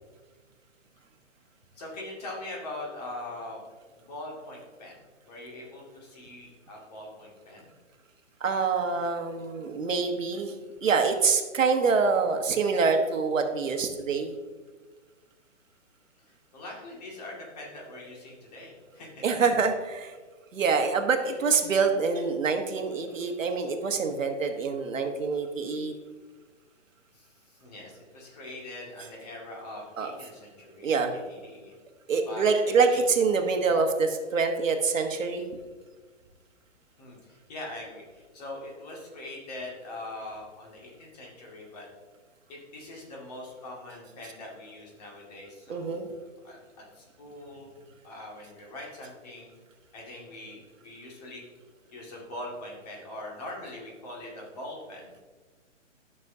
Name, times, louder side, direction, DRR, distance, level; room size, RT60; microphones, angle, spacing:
voice 1, 1.8-3.6 4.0-4.9 5.3-7.7 16.2-19.2 21.2-21.4 27.1-31.7 32.2-33.0 37.0-41.9 42.5-46.1 46.4-46.6 46.9-47.7 48.0-49.6 49.9-51.4 51.9-55.2, left 1 dB, 30° left, -2 dB, 2.0 m, -42 dB
voice 2, 8.4-10.6 10.8-14.3 19.2-20.1 20.5-25.9 30.0-30.1 30.8-31.1 32.1-35.5 45.7-46.1, right 5 dB, 85° right, 5 dB, 1.3 m, -25 dB
12.0 x 6.3 x 2.7 m, 1.3 s
hypercardioid pair, 165°, 38 cm